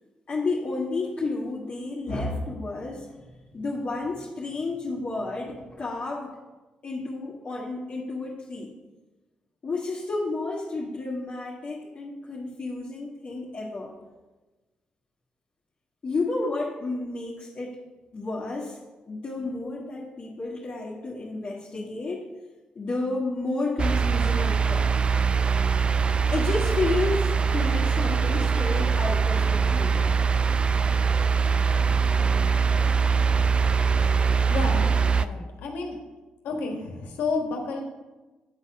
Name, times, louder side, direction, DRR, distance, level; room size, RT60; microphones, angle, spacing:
voice 1, 0.3-3.1 3.5-6.3 6.8-8.7 9.6-13.9 16.0-17.8 18.1-18.8 19.1-22.3 22.7-24.9 26.3-30.2, left 3 dB, 45° left, -5 dB, 1.5 m, -31 dB
sound 1, 23.8-35.2, right 5 dB, 35° right, 0.4 m, -22 dB
voice 2, 34.5-36.0 36.4-37.8, left 3 dB, 80° left, 2 dB, 1.4 m, -31 dB
8.9 x 4.1 x 6.0 m, 1.2 s
supercardioid pair, 60°, 3 cm